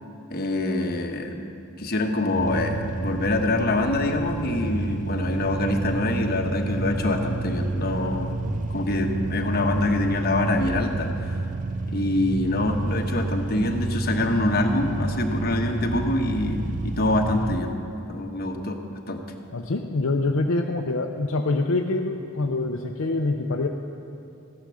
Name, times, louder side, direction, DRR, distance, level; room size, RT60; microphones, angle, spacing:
voice 1, 0.3-1.3 1.8-8.4 8.7-11.1 11.9-17.7 18.1-18.8 19.1-19.2, left 2 dB, 50° left, 3 dB, 1.2 m, -25 dB
sound 1, 2.3-17.6, right 2 dB, 40° right, 0.5 m, -29 dB
voice 2, 19.5-23.7, left 2 dB, 70° left, 2 dB, 0.6 m, -25 dB
14.5 x 10.5 x 6.3 m, 2.7 s
head